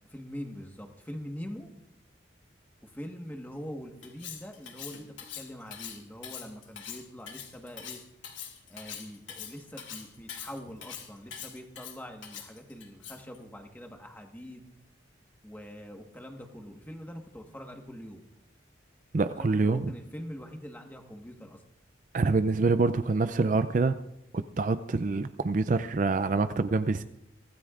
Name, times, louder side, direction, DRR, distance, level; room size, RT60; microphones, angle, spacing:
voice 1, 0.1-1.7 2.8-5.0 5.4-8.0 8.7-14.6 15.4-18.2 19.4-21.6, equal, 10° left, 3 dB, 1.4 m, -43 dB
Cutlery silverware, 4.0-13.4, left 8 dB, 80° left, 2.5 m, -43 dB
voice 2, 19.1-19.9 22.1-24.0 24.3-27.0, right 3 dB, 40° right, 11 dB, 0.4 m, -26 dB
23.5 x 16.5 x 2.5 m, 0.84 s
head